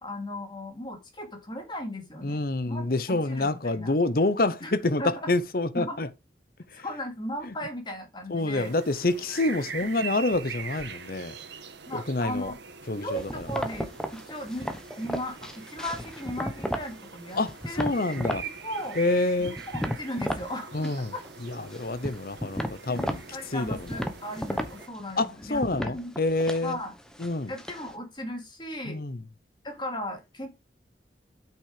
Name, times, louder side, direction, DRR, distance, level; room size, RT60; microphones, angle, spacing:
voice 1, 0.0-2.4 2.7-2.8 3.1-3.9 4.6-4.7 5.0-5.3 5.7-6.0 6.8-8.7 11.9-12.6 13.0-14.7 15.0-17.4 17.7-18.2 18.4-19.0 19.4-21.2 22.4-22.5 22.9-26.1 26.6-26.9 27.5-29.0 29.6-30.6, left 1 dB, 25° left, 2.5 m, -36 dB
voice 2, 2.2-6.1 6.7-6.8 7.4-7.5 8.3-11.4 11.9-12.5 12.9-13.5 17.4-18.4 19.0-19.6 20.7-21.1 21.4-23.2 23.5-24.0 25.2-26.8 27.2-27.5 28.8-29.2, left 2 dB, 50° left, 0.8 m, -27 dB
sound 1, 8.6-24.9, right 6 dB, 80° right, 1.3 m, -43 dB
sound 2, 13.2-17.0 17.3-18.5 18.8-20.5 20.8-21.4 21.7-27.9, equal, 5° left, 1.1 m, -34 dB
8.7 x 6.3 x 5.0 m
head